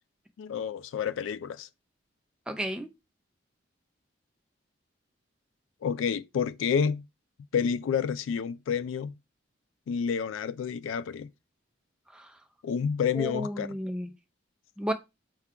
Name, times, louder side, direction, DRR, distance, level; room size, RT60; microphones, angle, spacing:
voice 1, 0.4-1.7 5.8-7.0 7.5-9.1 9.9-11.3 12.6-13.8, left 7 dB, 85° left, 0.3 m, -29 dB
voice 2, 2.5-2.9 12.1-12.3 13.2-14.1 14.8-14.9, equal, 5° right, 0.4 m, -32 dB
4.5 x 2.3 x 3.6 m
head